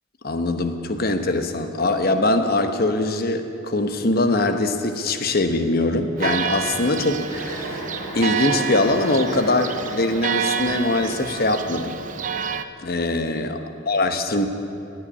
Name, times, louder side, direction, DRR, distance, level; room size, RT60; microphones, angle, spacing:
voice 1, 0.2-7.8 8.1-12.0 12.8-14.5, left 2 dB, 45° left, 7 dB, 1.0 m, -22 dB
Church bell, 6.2-12.6, right 6 dB, 40° right, 0.5 m, -28 dB
Chuckle chortle, 7.2-11.2, equal, 20° left, 3.9 m, -37 dB
17.5 x 8.0 x 9.9 m, 2.7 s
head